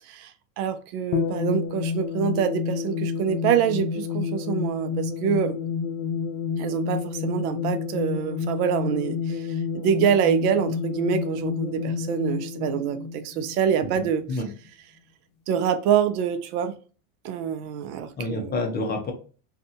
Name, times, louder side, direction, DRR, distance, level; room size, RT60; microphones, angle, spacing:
voice 1, 0.1-5.6 6.6-14.4 15.5-16.7 17.2-18.5, right 8 dB, 75° right, 0.6 m, -26 dB
sound 1, 1.1-13.9, left 6 dB, 65° left, 0.5 m, -29 dB
voice 2, 13.8-14.5 18.2-19.1, left 2 dB, 20° left, 0.6 m, -29 dB
2.6 x 2.4 x 2.7 m
supercardioid pair, 115°, 46 cm